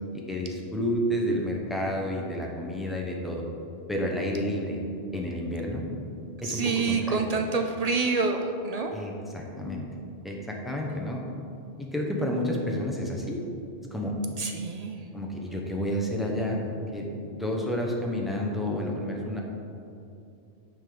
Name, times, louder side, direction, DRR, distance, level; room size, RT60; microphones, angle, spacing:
voice 1, 0.1-3.4 3.9-4.8 5.1-5.8 6.4-7.2 8.9-9.8 10.2-11.2 11.8-13.4 13.9-14.1 15.1-16.7 16.9-19.4, equal, ahead, -1 dB, 0.8 m, -30 dB
voice 2, 6.4-9.0 14.4-15.1, right 4 dB, 55° right, 3 dB, 0.4 m, -27 dB
9.3 x 5.2 x 3.9 m, 2.6 s
omnidirectional pair, 1.1 m